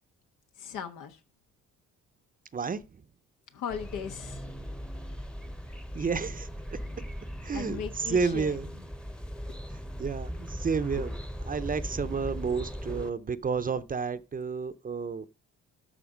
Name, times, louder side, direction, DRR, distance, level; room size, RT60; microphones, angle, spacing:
voice 1, 0.6-1.2 3.5-4.5 7.5-8.9 11.0-11.1, left 7 dB, 90° left, 1.4 m, -38 dB
sound 1, 3.7-13.1, equal, 5° left, 0.8 m, -39 dB
voice 2, 5.9-6.5 7.4-7.8 8.1-8.7 10.0-11.1 11.5-15.3, right 5 dB, 30° right, 0.6 m, -30 dB
12.5 x 4.2 x 5.0 m
cardioid pair, 90°, 30 cm